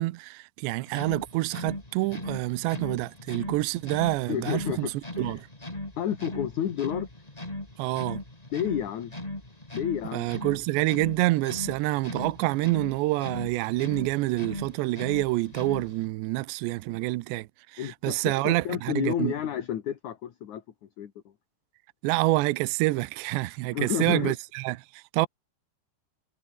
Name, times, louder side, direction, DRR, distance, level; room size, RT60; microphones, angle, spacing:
voice 1, 0.0-5.5 7.8-8.2 10.1-19.3 22.0-25.3, right 20 dB, 75° right, 2.8 m, -27 dB
sound 1, 0.9-16.1, left 1 dB, 10° left, 3.2 m, -39 dB
voice 2, 4.3-4.9 5.2-5.4 6.0-7.1 8.5-9.1 9.7-10.3 17.8-20.6 21.0-21.1 23.7-24.3, left 10 dB, 55° left, 2.4 m, -30 dB
omnidirectional pair, 5.5 m